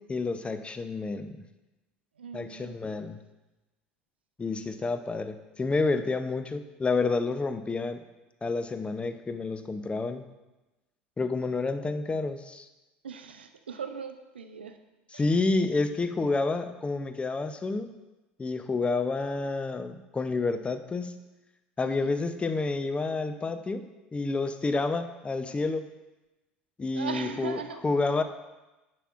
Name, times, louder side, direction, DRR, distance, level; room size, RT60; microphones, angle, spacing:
voice 1, 0.1-1.4 2.3-3.2 4.4-8.0 8.4-10.2 11.2-12.7 15.1-17.9 18.4-21.1 21.8-23.9 24.1-25.8 26.8-28.2, left 3 dB, 20° left, 9 dB, 0.6 m, -29 dB
voice 2, 2.2-2.8 13.0-14.8 15.1-15.3 21.8-22.1 26.9-27.8, right 6 dB, 90° right, 8 dB, 0.4 m, -39 dB
9.9 x 5.9 x 2.5 m, 1.1 s
hypercardioid pair, 70°, 5 cm